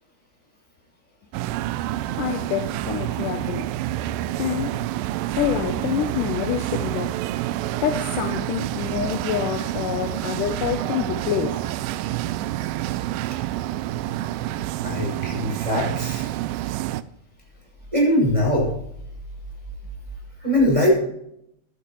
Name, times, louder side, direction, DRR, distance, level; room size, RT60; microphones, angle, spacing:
sound 1, 1.3-17.0, right 14 dB, 80° right, 2.3 m, -28 dB
voice 1, 2.2-3.7 4.4-4.9 5.3-7.2 7.8-11.7, left 10 dB, 75° left, 2.1 m, -27 dB
voice 2, 14.8-16.3 17.9-18.7 20.4-20.9, left 1 dB, 10° right, 5.6 m, -21 dB
15.0 x 12.5 x 3.0 m
omnidirectional pair, 4.2 m